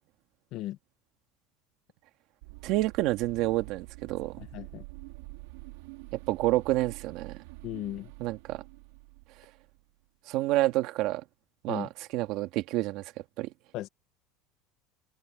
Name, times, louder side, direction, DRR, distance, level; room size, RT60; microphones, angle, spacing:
sound 1, 2.4-9.8, right 26 dB, 75° right, 2.7 m, -47 dB
voice 1, 2.6-4.4 6.1-7.4 8.2-8.6 10.3-11.2 11.6-13.0 13.4-13.5, right 17 dB, 45° right, 2.1 m, -28 dB
voice 2, 4.4-4.8 7.6-8.1 11.7-11.9 13.7-13.9, left 15 dB, 40° left, 1.2 m, -37 dB
cardioid pair, 180°, 0 cm